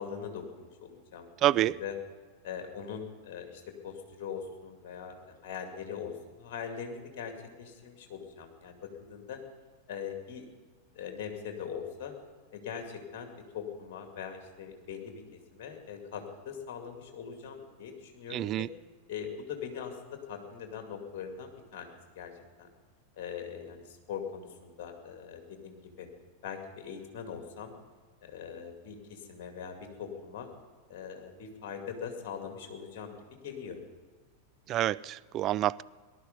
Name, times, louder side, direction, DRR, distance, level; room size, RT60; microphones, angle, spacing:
voice 1, 0.0-1.9 2.4-9.4 9.9-10.4 10.9-12.1 12.5-18.7 19.1-22.3 22.6-22.7 23.2-26.1 26.4-27.7 28.2-30.5 30.9-33.2 33.4-33.8, left 7 dB, 45° left, 5 dB, 2.4 m, -41 dB
voice 2, 1.4-1.7 18.3-18.7 34.7-35.8, right 13 dB, 35° right, 17 dB, 0.3 m, -27 dB
19.0 x 11.5 x 5.3 m, 1.4 s
figure-of-eight pair, 90°, 0 cm